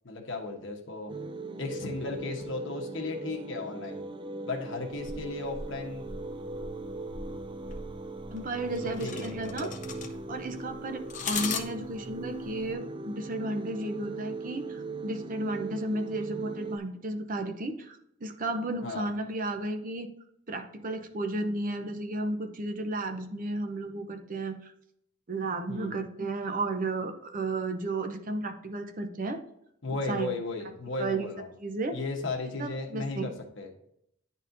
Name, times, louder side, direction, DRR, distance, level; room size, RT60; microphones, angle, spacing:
voice 1, 0.0-1.1 1.6-4.0 4.4-6.1 8.8-9.7 18.8-19.1 25.7-25.9 29.8-31.5 31.9-33.7, left 3 dB, 65° left, 2 dB, 1.2 m, -35 dB
sound 1, 1.1-16.8, right 3 dB, 25° right, 0.3 m, -39 dB
sound 2, 4.9-12.7, left 5 dB, 40° left, 0.7 m, -40 dB
voice 2, 8.3-9.7 10.3-20.1 20.5-24.7 25.3-29.4 30.1-30.3 31.0-31.3 31.6-32.0 32.6-33.3, right 2 dB, 45° right, 6 dB, 0.7 m, -33 dB
9.9 x 4.2 x 2.7 m, 0.74 s
head